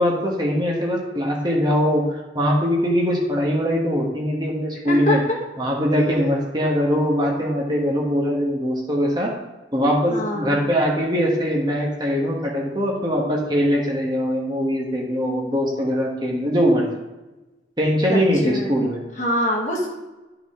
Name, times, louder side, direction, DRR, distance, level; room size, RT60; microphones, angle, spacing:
voice 1, 0.0-5.2 5.6-9.3 9.7-16.9 17.8-19.0, equal, 25° right, -2 dB, 1.4 m, -21 dB
voice 2, 4.9-5.4 10.1-10.6 18.1-18.8 19.2-19.9, left 1 dB, 45° left, -3 dB, 1.7 m, -24 dB
11.5 x 4.9 x 3.7 m, 1.1 s
head